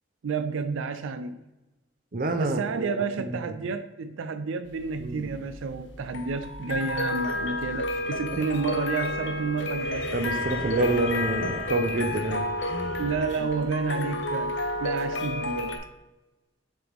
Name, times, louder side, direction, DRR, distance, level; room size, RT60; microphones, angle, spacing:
voice 1, 0.2-1.4 2.4-10.1 13.0-15.7, right 5 dB, 85° right, 9 dB, 0.4 m, -30 dB
voice 2, 2.1-3.6 5.0-5.3 10.1-12.5 13.4-13.5, right 2 dB, 45° right, 7 dB, 0.7 m, -28 dB
sound 1, 4.7-15.8, left 2 dB, 70° left, 0.8 m, -31 dB
sound 2, 9.7-14.5, left 1 dB, 85° left, 1.1 m, -39 dB
7.5 x 3.5 x 4.6 m, 1.0 s
head